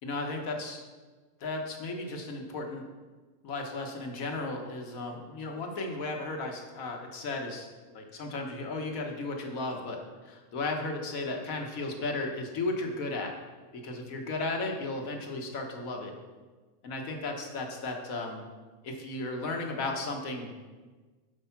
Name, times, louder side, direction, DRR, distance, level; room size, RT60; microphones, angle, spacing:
voice 1, 0.0-0.8 1.4-2.8 3.4-7.7 7.9-13.3 13.7-16.1 16.8-18.4 18.8-20.5, left 2 dB, 65° left, 2 dB, 1.6 m, -35 dB
10.0 x 5.0 x 5.8 m, 1.3 s
omnidirectional pair, 1.6 m